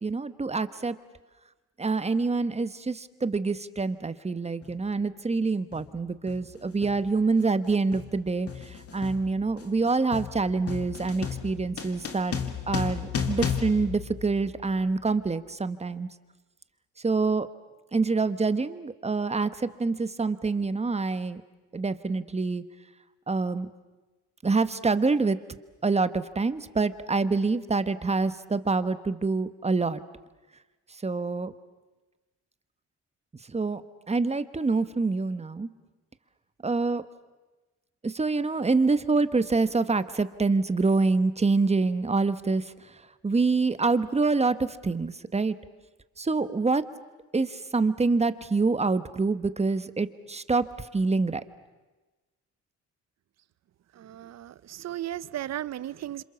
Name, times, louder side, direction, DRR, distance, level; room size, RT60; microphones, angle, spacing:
voice 1, 0.0-0.9 1.8-12.4 12.7-16.1 17.0-17.5 17.9-21.4 21.7-22.6 23.3-23.7 24.4-25.4 25.8-30.0 30.9-31.5 33.5-33.8 34.1-35.7 36.6-37.0 38.0-45.6 46.2-46.8 47.3-51.4, right 3 dB, 20° right, 1.3 m, -26 dB
sound 1, 4.6-4.8 5.7-6.0 6.3-14.8, left 7 dB, 50° left, 2.4 m, -34 dB
voice 2, 54.0-56.2, right 12 dB, 60° right, 0.8 m, -35 dB
27.5 x 26.5 x 7.1 m
cardioid pair, 90°, 30 cm